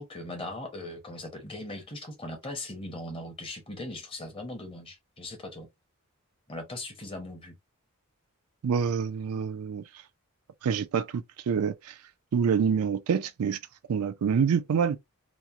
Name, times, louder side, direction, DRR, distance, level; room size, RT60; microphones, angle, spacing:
voice 1, 0.0-5.7 6.5-7.6, left 1 dB, 25° left, 0.8 m, -39 dB
voice 2, 8.6-9.8 10.6-12.0 12.3-13.6 13.9-15.0, right 6 dB, 85° right, 0.4 m, -26 dB
2.9 x 2.0 x 2.3 m
head